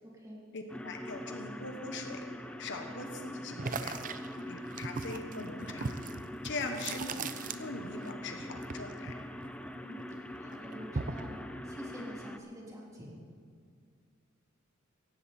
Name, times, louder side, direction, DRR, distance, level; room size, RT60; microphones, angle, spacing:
voice 1, 0.0-0.4 4.3-4.5 9.7-13.1, equal, 15° right, -4 dB, 3.2 m, -48 dB
voice 2, 0.5-2.2 2.6-4.0 4.5-6.0 6.4-7.3 7.6-9.1, left 3 dB, 60° left, 4 dB, 1.3 m, -41 dB
sound 1, 0.7-12.4, left 1 dB, 5° left, 0.6 m, -43 dB
sound 2, 3.6-8.1 8.4-10.0 10.3-11.3, right 4 dB, 40° right, 0.6 m, -39 dB
17.0 x 15.0 x 4.3 m, 2.1 s
head